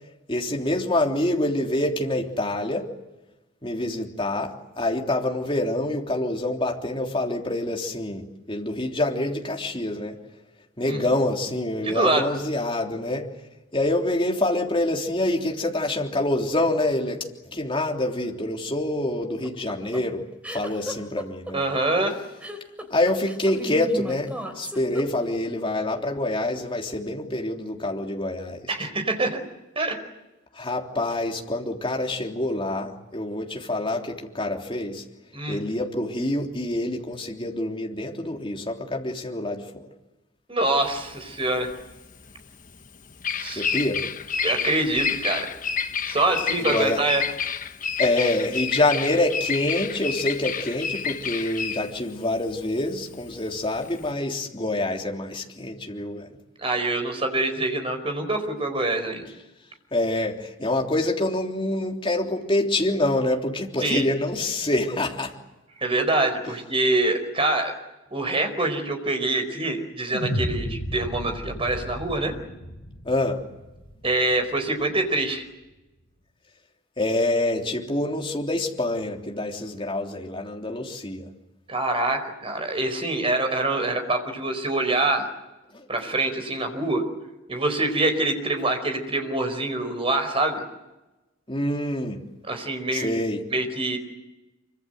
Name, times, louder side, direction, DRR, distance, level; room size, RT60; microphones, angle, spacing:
voice 1, 0.3-2.9 3.6-10.2 10.8-13.3 13.7-20.2 20.5-21.6 22.9-28.7 30.5-35.0 35.5-39.9 43.5-44.1 46.6-47.0 48.0-56.3 59.9-65.3 73.0-73.4 77.0-81.3 85.7-85.9 91.5-92.2 92.9-93.4, left 1 dB, 25° left, 1 dB, 3.4 m, -26 dB
voice 2, 11.8-12.3 21.5-22.1 28.7-29.4 29.7-30.0 35.3-35.6 40.5-41.7 43.4-43.7 44.4-45.5 46.1-47.2 56.6-59.3 63.8-64.1 65.8-67.7 68.1-72.3 74.0-75.4 81.7-85.3 85.9-87.0 87.5-90.6 92.5-93.1 93.5-94.0, right 2 dB, 30° right, 6 dB, 4.6 m, -25 dB
sound 1, 19.2-25.5, equal, 5° right, 3.6 m, -35 dB
Bird vocalization bird call bird song, 40.8-54.1, left 6 dB, 40° left, 1.1 m, -30 dB
sound 2, 70.1-74.5, equal, 60° left, 4.8 m, -33 dB
26.0 x 25.0 x 8.0 m, 1.0 s
head